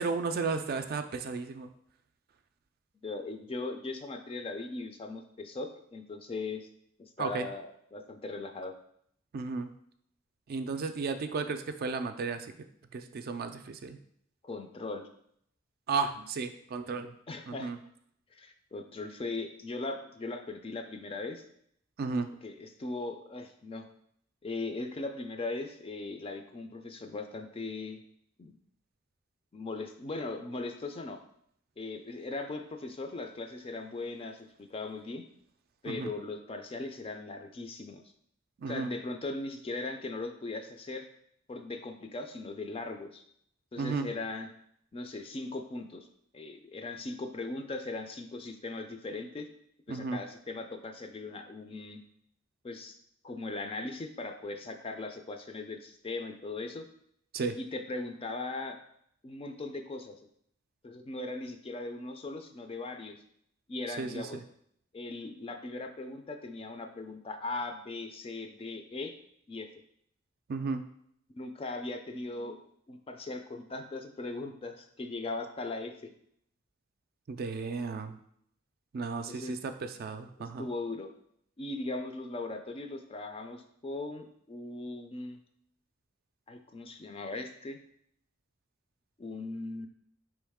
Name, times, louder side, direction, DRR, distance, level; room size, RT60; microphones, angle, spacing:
voice 1, 0.0-1.7 7.2-7.5 9.3-9.7 10.5-12.5 12.9-14.0 15.9-17.1 17.5-17.8 22.0-22.3 35.8-36.1 38.6-38.9 43.8-44.1 49.9-50.2 57.3-57.6 64.0-64.4 70.5-70.8 77.3-78.2 78.9-80.7, right 4 dB, 50° right, 8 dB, 0.4 m, -34 dB
voice 2, 3.0-6.7 7.0-8.7 14.4-15.1 17.3-17.7 18.3-21.4 22.4-23.9 24.4-28.0 28.4-28.5 29.5-31.2 31.8-35.2 35.8-38.0 38.7-41.1 41.5-43.2 43.7-44.5 44.9-46.1 46.3-49.5 49.9-52.0 52.6-52.9 53.2-56.9 57.6-58.8 59.2-60.2 60.8-63.2 63.7-64.4 64.9-69.1 69.5-69.7 71.4-72.6 72.9-76.1 79.3-79.6 80.4-81.1 81.6-85.4 86.5-87.8 89.2-89.9, left 3 dB, 30° left, 6 dB, 0.4 m, -39 dB
4.6 x 3.1 x 3.5 m, 0.69 s
head